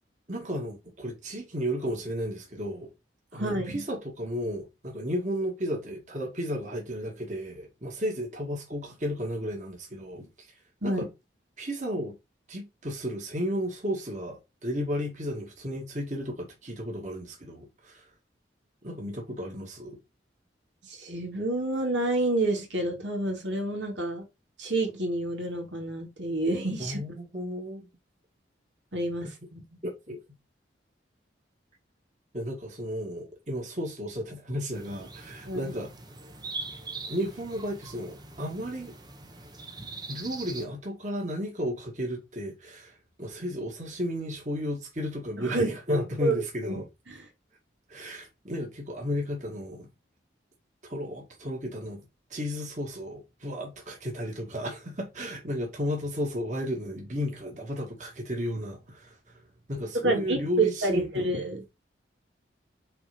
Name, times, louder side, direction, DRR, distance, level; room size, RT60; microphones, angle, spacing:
voice 1, 0.3-2.9 3.3-10.5 10.8-11.1 11.6-12.1 12.5-18.0 18.8-20.0 26.8-27.9 29.8-30.2 32.3-35.9 37.1-38.9 40.1-46.9 47.9-49.9 50.9-52.0 52.3-59.4 59.7-61.3, equal, 40° right, 2.4 m, -33 dB
voice 2, 3.3-3.8 10.8-11.0 20.8-24.3 24.6-27.1 28.9-29.6 35.4-35.8 45.4-46.8 47.1-47.3 59.9-61.8, right 2 dB, 75° right, 2.8 m, -29 dB
sound 1, 34.7-40.7, right 3 dB, 20° right, 1.0 m, -42 dB
5.7 x 4.2 x 5.3 m
head